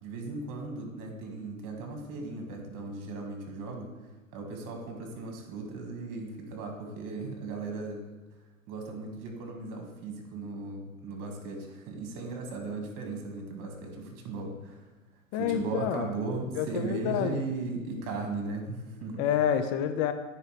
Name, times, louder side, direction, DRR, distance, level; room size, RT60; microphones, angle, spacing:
voice 1, 0.0-3.9 4.3-8.0 8.7-14.9 15.3-19.3, right 3 dB, 50° right, 2 dB, 1.9 m, -37 dB
voice 2, 15.3-16.1 16.5-17.5 19.2-20.1, left 9 dB, 55° left, 10 dB, 0.6 m, -28 dB
9.8 x 4.5 x 3.3 m, 1.1 s
hypercardioid pair, 100°, 42 cm